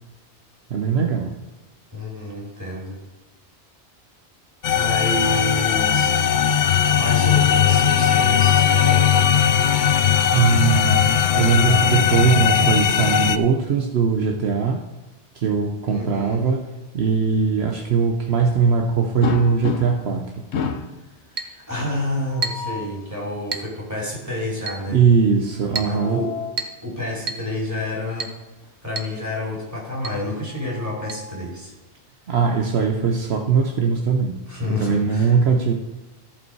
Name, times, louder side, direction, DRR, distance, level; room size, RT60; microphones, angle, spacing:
voice 1, 0.7-1.3 10.3-14.8 15.3-16.6 16.9-20.2 24.9-26.2 32.3-34.4 34.7-35.7, right 5 dB, 70° right, 2 dB, 1.1 m, -20 dB
voice 2, 1.9-3.0 4.7-6.1 6.9-9.3 15.9-16.5 21.3-25.0 25.8-26.3 26.8-28.3 28.8-31.7 34.5-35.3, left 2 dB, 15° right, -4 dB, 3.1 m, -29 dB
sound 1, 4.6-13.4, left 8 dB, 60° left, 0.5 m, -18 dB
sound 2, 19.2-20.2 20.5-21.0 22.2-23.0 25.6-26.7 28.1-28.3 28.6-28.7 30.3-31.5, left 6 dB, 75° left, 1.0 m, -31 dB
Chink clink, 21.4-21.6 22.4-22.7 23.5-23.7 24.7-24.9 25.8-26.0 26.6-26.8 27.3-27.5 28.2-28.4 29.0-29.2 29.4-29.5 30.0-30.2 31.1-31.2, right 4 dB, 45° right, 0.9 m, -30 dB
14.5 x 5.3 x 4.6 m, 1.1 s
omnidirectional pair, 1.1 m